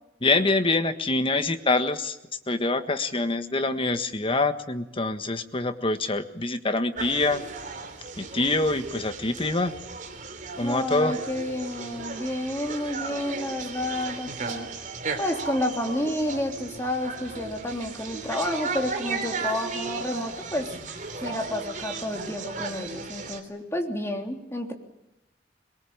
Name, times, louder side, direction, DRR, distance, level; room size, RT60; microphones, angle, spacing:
voice 1, 0.2-2.2 2.5-7.4 8.2-9.7 10.6-11.2, left 2 dB, 30° left, 9 dB, 1.6 m, -25 dB
sound 1, 7.0-23.4, right 4 dB, 45° right, 3.2 m, -35 dB
voice 2, 10.6-14.7 15.2-20.7 21.2-24.7, left 1 dB, 15° left, 3 dB, 3.3 m, -30 dB
22.5 x 22.0 x 8.8 m, 0.93 s
head